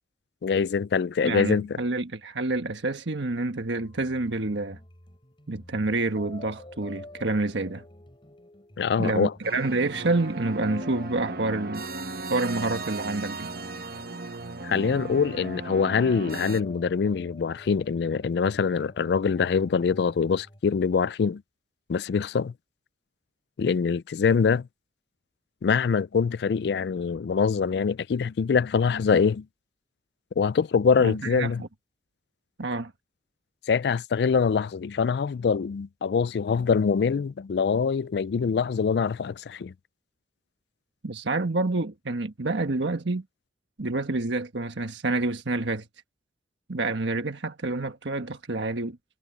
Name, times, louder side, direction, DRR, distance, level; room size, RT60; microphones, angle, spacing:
voice 1, 0.4-1.8 8.8-9.3 14.6-21.4 21.9-22.5 23.6-24.7 25.6-29.5 30.4-31.6 33.7-39.7, left 5 dB, 65° left, 0.3 m, -24 dB
voice 2, 1.2-4.8 5.5-7.8 9.0-11.9 12.3-13.5 31.0-31.7 32.6-32.9 41.0-43.2 43.8-45.8 46.7-49.0, right 2 dB, 85° right, 1.3 m, -28 dB
sound 1, 3.8-20.6, left 1 dB, 30° left, 5.2 m, -48 dB
sound 2, 9.4-16.6, right 2 dB, 55° right, 1.2 m, -36 dB
head